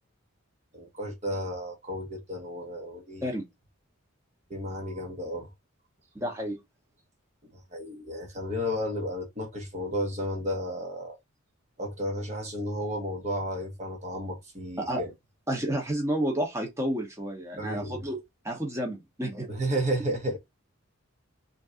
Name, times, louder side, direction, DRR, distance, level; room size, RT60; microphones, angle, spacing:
voice 1, 0.7-3.3 4.5-5.5 7.7-11.2 11.8-15.1 17.6-18.0 19.5-20.4, equal, 30° right, 1.1 m, -32 dB
voice 2, 6.1-6.6 14.8-15.0 15.5-19.5, right 1 dB, 15° right, 1.1 m, -31 dB
3.7 x 2.8 x 3.6 m
head